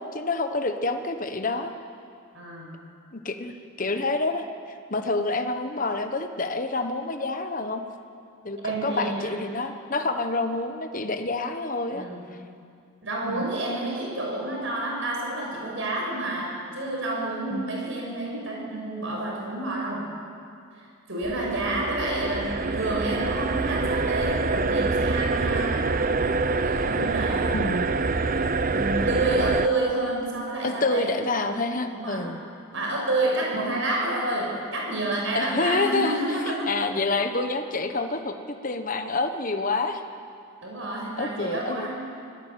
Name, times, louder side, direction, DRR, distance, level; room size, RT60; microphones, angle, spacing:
voice 1, 0.0-1.7 3.1-7.8 8.4-12.1 13.3-13.5 17.5-17.7 27.5-27.9 30.6-32.4 33.5-33.6 35.3-36.2 36.5-40.0 41.2-41.9, left 3 dB, 40° left, 7 dB, 1.2 m, -28 dB
voice 2, 2.3-2.8 8.6-9.3 11.9-12.3 13.0-20.1 21.1-26.0 26.6-27.6 28.7-31.2 31.9-32.3 32.7-36.7 40.6-41.9, right 2 dB, 60° right, -2 dB, 6.0 m, -29 dB
sound 1, 21.2-29.7, right 3 dB, 40° right, 0.6 m, -25 dB
25.5 x 17.5 x 7.7 m, 2.4 s
head